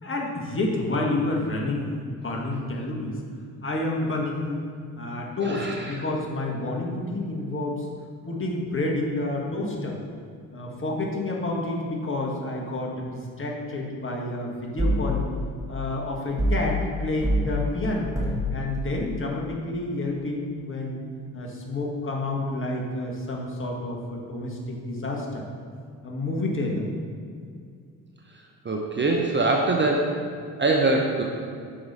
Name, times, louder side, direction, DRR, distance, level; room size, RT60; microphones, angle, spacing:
voice 1, 0.0-3.2 3.6-4.6 5.0-7.9 8.3-10.0 10.5-15.2 15.7-18.1 18.5-21.0 21.3-25.4 26.0-26.9, left 2 dB, 25° left, -2 dB, 1.6 m, -29 dB
voice 2, 5.4-5.9 28.6-30.2 30.6-31.2, right 2 dB, 25° right, 0 dB, 0.7 m, -23 dB
sound 1, 14.8-15.1 16.4-16.7 17.2-17.5 18.1-18.5, right 1 dB, 5° right, 1.4 m, -23 dB
5.9 x 4.9 x 4.2 m, 2.3 s
hypercardioid pair, 45°, 45 cm